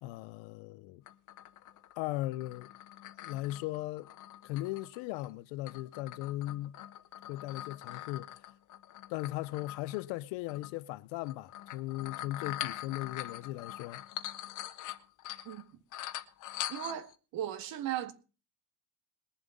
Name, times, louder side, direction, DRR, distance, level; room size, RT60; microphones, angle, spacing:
voice 1, 0.0-1.0 2.0-2.7 3.2-4.1 4.4-6.8 7.3-8.5 9.1-14.0, left 17 dB, 80° left, 0.8 m, -38 dB
sound 1, 1.1-5.3 5.7-10.1 10.5-10.7 11.2-15.6 15.9-17.1, left 13 dB, 45° left, 1.1 m, -43 dB
voice 2, 16.7-18.1, right 11 dB, 50° right, 1.9 m, -37 dB
21.5 x 7.3 x 5.2 m
cardioid pair, 170°, 44 cm